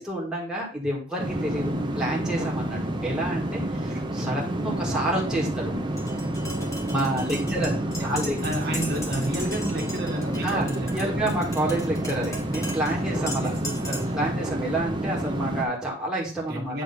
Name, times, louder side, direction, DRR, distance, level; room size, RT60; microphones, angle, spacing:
voice 1, 0.0-5.7 6.9-7.7 8.0-8.4 10.4-10.7 10.9-13.5 14.1-16.8, right 1 dB, 5° right, -4 dB, 1.7 m, -29 dB
sound 1, 1.2-15.6, right 1 dB, 25° right, 0.9 m, -29 dB
Tap, 6.0-14.2, left 1 dB, 15° left, 1.5 m, -38 dB
voice 2, 7.1-11.3 13.0-14.3 16.5-16.8, right 1 dB, 50° right, -1 dB, 1.7 m, -32 dB
8.8 x 3.2 x 5.4 m, 0.39 s
head